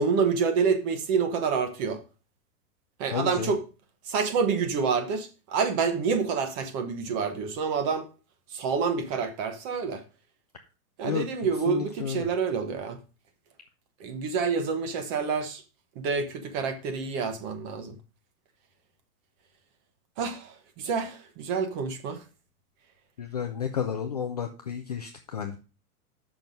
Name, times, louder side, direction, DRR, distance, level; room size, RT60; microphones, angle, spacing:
voice 1, 0.0-2.0 3.0-3.6 4.1-8.1 8.5-10.0 11.0-13.0 14.0-15.6 16.0-17.9 20.2-22.2, right 5 dB, 30° right, 1.1 m, -28 dB
voice 2, 3.1-3.6 11.0-12.3 23.2-25.6, left 8 dB, 30° left, 0.3 m, -32 dB
6.8 x 6.1 x 5.2 m
supercardioid pair, 165°, 45 cm